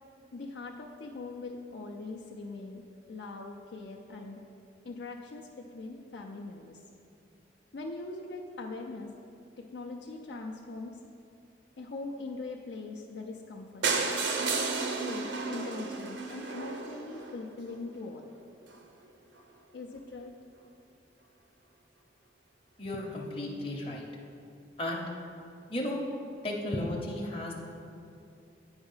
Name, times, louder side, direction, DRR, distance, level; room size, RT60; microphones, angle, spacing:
voice 1, 0.3-4.4 4.8-6.8 7.7-9.1 9.6-11.0 11.8-14.1 15.0-18.3 19.7-20.3, left 3 dB, 70° left, 1 dB, 0.5 m, -41 dB
sound 1, 13.8-17.7 18.4-18.5 18.7-18.8 19.1-19.2 19.4-19.5, right 4 dB, 80° right, 0.8 m, -32 dB
voice 2, 22.8-24.1 24.8-25.1 25.7-26.0 26.4-27.5, left 1 dB, 30° left, -2 dB, 0.8 m, -34 dB
8.8 x 4.8 x 5.5 m, 2.7 s
head